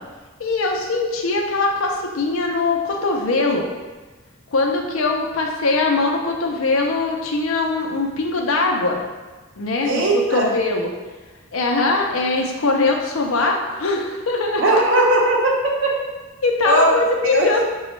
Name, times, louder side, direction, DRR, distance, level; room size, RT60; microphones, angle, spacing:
voice 1, 0.4-3.7 4.5-9.0 9.6-10.0 10.3-10.9 11.5-14.8 16.4-17.6, left 3 dB, 85° left, 1 dB, 0.6 m, -21 dB
voice 2, 9.8-10.5 14.6-15.9 16.6-16.9 17.3-17.5, right 2 dB, 65° right, -2 dB, 0.7 m, -18 dB
5.0 x 2.3 x 3.1 m, 1.3 s
head